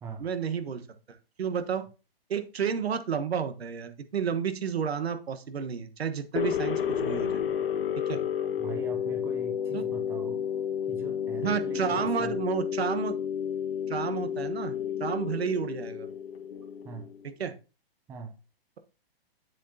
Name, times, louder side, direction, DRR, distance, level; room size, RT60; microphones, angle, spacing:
voice 1, 0.2-0.8 1.1-1.8 2.3-7.4 8.1-8.2 9.7-9.8 11.4-13.1 13.9-16.1 17.4-17.5, right 7 dB, 85° right, 10 dB, 1.3 m, -31 dB
sound 1, 6.4-17.2, left 8 dB, 65° left, 1.2 m, -31 dB
voice 2, 8.6-10.4 10.9-12.4 16.8-17.1 18.1-18.3, right 4 dB, 10° right, 5 dB, 0.6 m, -42 dB
8.0 x 7.3 x 2.8 m, 0.32 s
hypercardioid pair, 150°, 30 cm